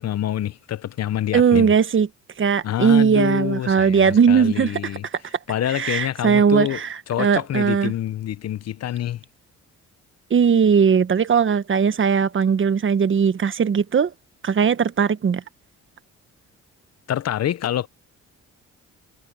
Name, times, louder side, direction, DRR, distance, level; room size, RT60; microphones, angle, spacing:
voice 1, 0.0-1.7 2.6-5.1 5.5-6.8 7.1-9.2 17.1-17.9, left 11 dB, 55° left, 0.8 m, -26 dB
voice 2, 1.3-2.1 2.4-4.9 5.7-7.9 10.3-14.1 14.4-15.4, right 6 dB, 40° right, 1.2 m, -18 dB
cardioid pair, 90°, 30 cm